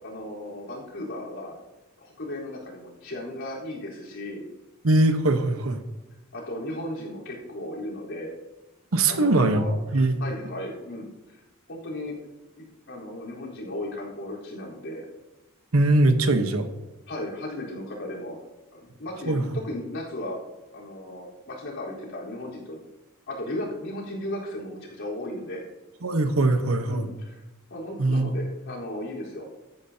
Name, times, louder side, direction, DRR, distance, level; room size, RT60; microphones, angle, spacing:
voice 1, 0.0-1.6 2.0-4.4 6.3-8.3 9.1-11.4 11.7-12.1 12.6-15.0 17.1-18.4 18.7-20.4 20.7-22.8 23.3-25.6 26.9-27.4 27.7-29.5, left 1 dB, 65° left, -5 dB, 4.0 m, -35 dB
voice 2, 4.8-5.8 8.9-9.7 9.9-10.2 15.7-16.7 19.3-19.4 26.0-27.1 28.0-28.3, right 2 dB, 80° right, 8 dB, 1.1 m, -21 dB
15.5 x 9.9 x 2.8 m, 1.0 s
head